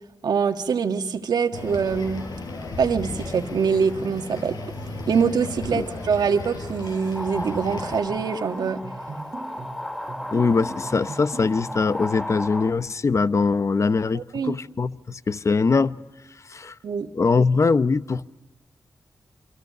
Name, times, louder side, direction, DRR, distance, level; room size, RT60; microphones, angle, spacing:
voice 1, 0.2-2.3 2.8-4.6 5.1-8.8 14.1-14.6 16.8-17.1, right 6 dB, 85° right, 1.7 m, -24 dB
sound 1, 1.5-8.0, left 2 dB, 80° left, 5.7 m, -35 dB
sound 2, 6.8-12.7, left 1 dB, 5° left, 3.9 m, -34 dB
sound 3, 8.1-11.9, right 3 dB, 45° right, 1.6 m, -39 dB
voice 2, 10.3-16.0 16.5-16.7 17.1-18.3, left 4 dB, 45° left, 0.9 m, -22 dB
27.5 x 26.0 x 6.7 m
wide cardioid pair, 85°, 7 cm